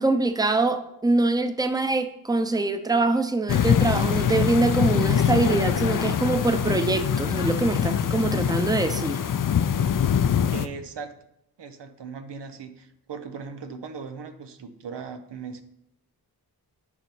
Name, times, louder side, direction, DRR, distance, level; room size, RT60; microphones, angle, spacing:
voice 1, 0.0-9.2, right 2 dB, 10° right, 9 dB, 0.7 m, -24 dB
sound 1, 3.5-10.7, left 8 dB, 50° left, 0.5 m, -23 dB
voice 2, 10.5-11.1 11.6-15.6, right 5 dB, 90° right, 8 dB, 0.8 m, -38 dB
9.8 x 5.5 x 4.5 m, 0.81 s
wide cardioid pair, 70°, 41 cm